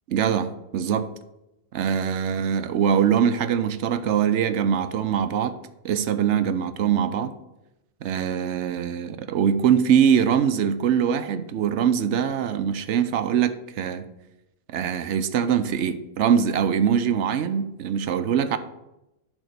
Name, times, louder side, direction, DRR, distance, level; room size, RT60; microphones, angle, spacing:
voice 1, 0.1-1.1 1.7-5.6 5.8-7.3 8.0-14.1 14.7-18.6, right 8 dB, 75° right, 12 dB, 0.9 m, -23 dB
10.5 x 3.6 x 6.6 m, 0.93 s
omnidirectional pair, 1.2 m